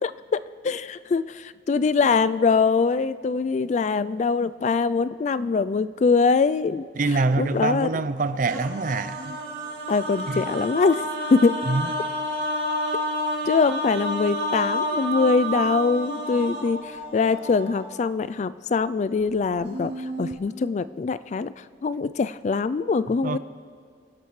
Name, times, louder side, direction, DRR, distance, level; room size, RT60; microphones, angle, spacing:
voice 1, 0.0-6.9 7.1-7.9 9.9-11.0 11.3-11.6 13.4-21.5 21.8-23.4, left 4 dB, 40° left, 0.3 m, -23 dB
voice 2, 7.0-9.3 10.3-10.5 11.7-11.9 23.2-23.4, right 3 dB, 50° right, 0.5 m, -25 dB
sound 1, 8.5-18.1 19.3-19.4 19.6-20.4, equal, 70° right, 2.2 m, -30 dB
25.5 x 11.5 x 3.2 m
head